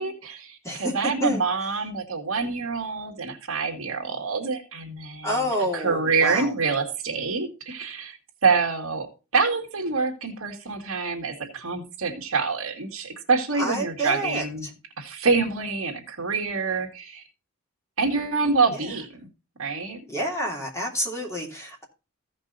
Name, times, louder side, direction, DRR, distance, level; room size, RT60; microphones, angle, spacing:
voice 1, 0.0-8.2 8.4-14.7 15.0-17.2 18.0-19.3 19.6-20.0, right 4 dB, 70° right, 3 dB, 2.0 m, -26 dB
voice 2, 5.2-6.5 13.6-14.7 18.7-18.9 20.1-21.8, equal, 15° left, -1 dB, 3.0 m, -28 dB
15.0 x 5.3 x 4.0 m, 0.31 s
head